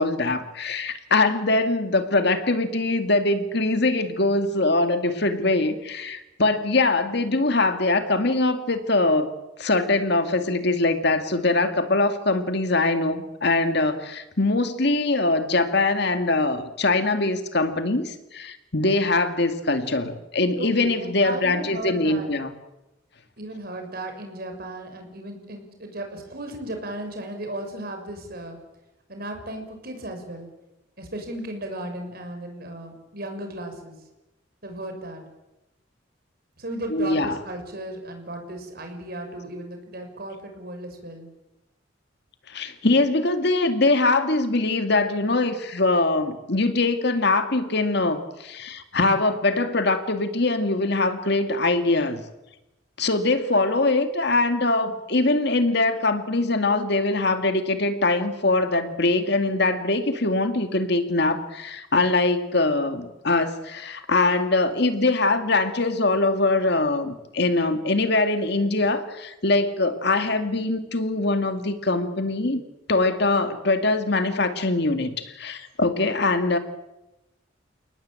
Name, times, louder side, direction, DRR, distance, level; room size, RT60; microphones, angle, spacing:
voice 1, 0.0-9.3 9.6-22.5 36.9-37.4 42.5-52.2 53.0-72.6 72.9-76.6, left 2 dB, 60° left, 8 dB, 2.3 m, -22 dB
voice 2, 20.6-22.3 23.4-28.6 29.1-30.5 31.0-33.9 34.6-35.2 36.6-41.3, right 1 dB, 50° right, 5 dB, 6.4 m, -35 dB
29.5 x 19.0 x 8.9 m, 0.95 s
head